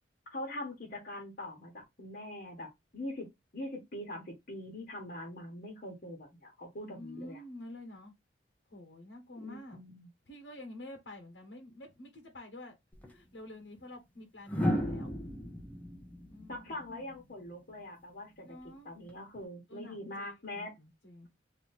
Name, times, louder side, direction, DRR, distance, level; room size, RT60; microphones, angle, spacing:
voice 1, 0.3-3.3 3.5-7.4 9.4-10.1 16.5-18.4 18.8-20.7, left 1 dB, 55° left, 1.3 m, -43 dB
voice 2, 6.8-8.1 8.7-9.8 10.3-12.8 13.1-15.2 16.3-17.0 18.4-18.9 19.7-21.3, left 1 dB, 70° left, 1.3 m, -49 dB
sound 1, 12.9-13.1 14.5-17.5 19.1-19.4, equal, 10° left, 0.7 m, -35 dB
3.1 x 2.6 x 4.0 m
head